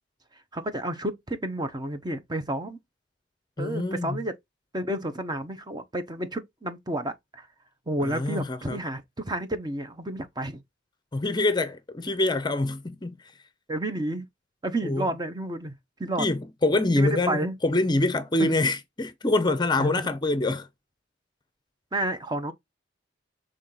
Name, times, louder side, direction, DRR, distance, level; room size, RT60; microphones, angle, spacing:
voice 1, 0.5-2.8 3.6-4.3 4.7-7.5 7.9-10.6 13.7-14.3 14.6-16.3 16.9-17.6 18.4-18.6 19.8-20.1 21.9-22.5, right 1 dB, 20° right, 0.9 m, -31 dB
voice 2, 3.6-4.2 8.0-8.8 11.1-13.2 14.8-15.0 16.2-20.7, left 2 dB, 25° left, 0.6 m, -25 dB
6.2 x 3.8 x 4.0 m
head